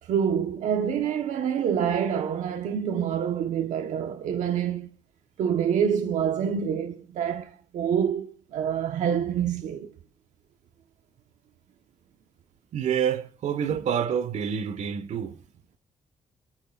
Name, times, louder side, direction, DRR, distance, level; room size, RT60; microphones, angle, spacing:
voice 1, 0.0-4.9 5.4-9.9, right 8 dB, 85° right, 1.3 m, -27 dB
voice 2, 12.7-15.4, right 8 dB, 70° right, 1.7 m, -27 dB
28.0 x 14.5 x 2.6 m
cardioid pair, 145°, 12 cm